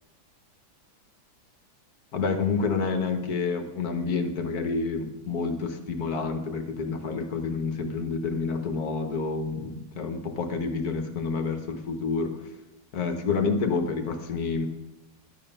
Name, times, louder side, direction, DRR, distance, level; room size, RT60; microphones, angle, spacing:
voice 1, 2.1-12.4 12.9-14.7, left 4 dB, 60° left, 6 dB, 1.6 m, -28 dB
11.0 x 9.2 x 5.5 m, 0.98 s
omnidirectional pair, 1.9 m